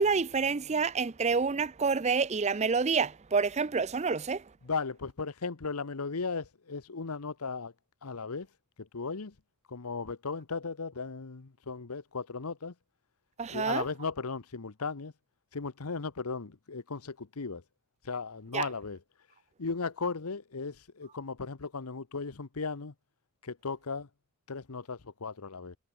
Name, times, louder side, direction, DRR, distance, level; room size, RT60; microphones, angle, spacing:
voice 1, 0.0-4.4 13.4-13.8 18.5-18.7, right 5 dB, 30° right, 0.5 m, -28 dB
voice 2, 4.6-7.7 8.0-8.5 8.8-9.3 9.7-12.7 13.5-15.1 15.5-17.6 18.0-19.0 19.6-22.9 23.4-24.1 24.5-25.8, left 4 dB, 90° left, 1.0 m, -36 dB
head